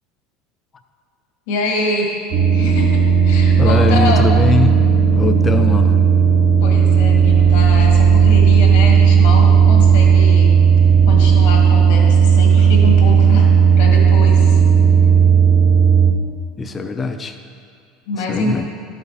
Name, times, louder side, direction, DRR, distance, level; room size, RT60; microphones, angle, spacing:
voice 1, 1.5-4.2 6.6-10.5 11.1-14.6 18.1-18.5, left 2 dB, 80° left, 0 dB, 1.8 m, -25 dB
sound 1, 2.3-16.1, right 6 dB, 45° right, 0.9 m, -12 dB
voice 2, 3.6-4.8 5.1-5.9 16.6-17.4 18.2-18.7, left 4 dB, 20° left, 7 dB, 0.5 m, -20 dB
11.5 x 5.7 x 4.1 m, 2.3 s
supercardioid pair, 130°, 0 cm